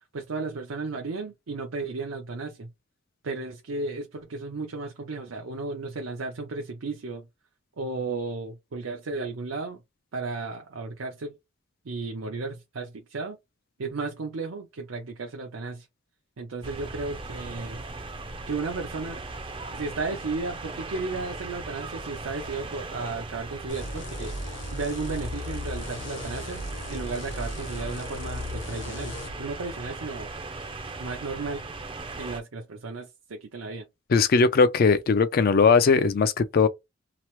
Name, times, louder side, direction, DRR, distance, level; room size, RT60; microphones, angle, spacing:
voice 1, 0.1-2.7 3.2-7.3 7.8-9.8 10.1-11.4 11.8-13.4 13.8-15.9 16.4-17.8 18.5-19.2 19.7-24.3 24.7-26.6 26.9-30.3 31.0-31.6 32.2-33.9, right 3 dB, 85° right, 0.6 m, -34 dB
sound 1, 16.6-32.4, right 3 dB, 25° right, 0.4 m, -38 dB
sound 2, 23.7-29.3, left 1 dB, 65° left, 0.9 m, -36 dB
voice 2, 34.1-36.7, left 5 dB, 45° left, 0.3 m, -19 dB
2.9 x 2.0 x 3.0 m
head